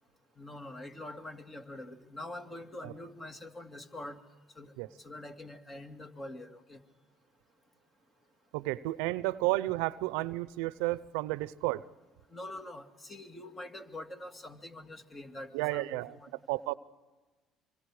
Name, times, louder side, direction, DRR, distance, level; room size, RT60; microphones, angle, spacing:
voice 1, 0.4-4.2 4.6-4.7 5.0-6.8 12.3-16.3, left 1 dB, 30° left, 6 dB, 2.3 m, -45 dB
voice 2, 8.5-11.8 15.5-16.2 16.5-16.7, right 19 dB, 90° right, 17 dB, 0.6 m, -32 dB
26.0 x 25.0 x 4.9 m, 1.2 s
supercardioid pair, 85°, 0 cm